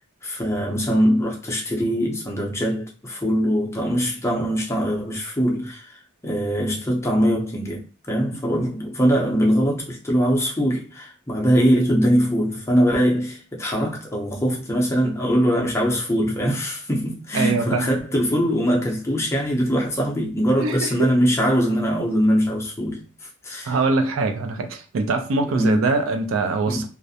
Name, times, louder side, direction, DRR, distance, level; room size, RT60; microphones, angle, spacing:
voice 1, 0.2-23.0 23.4-23.8 25.4-25.9 26.7-26.9, equal, 15° left, 0.5 m, -22 dB
voice 2, 17.3-18.0 20.6-21.1 23.7-26.9, right 3 dB, 75° right, 0.4 m, -23 dB
2.4 x 2.0 x 2.7 m
head